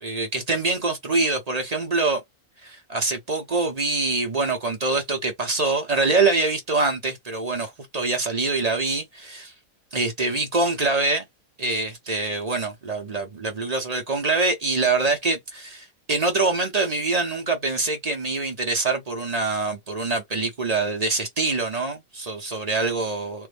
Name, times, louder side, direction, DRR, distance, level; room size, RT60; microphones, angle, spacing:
voice 1, 0.0-2.2 2.6-9.5 9.9-11.3 11.6-23.5, right 3 dB, 35° right, 0.7 m, -24 dB
3.4 x 2.0 x 3.3 m
omnidirectional pair, 1.5 m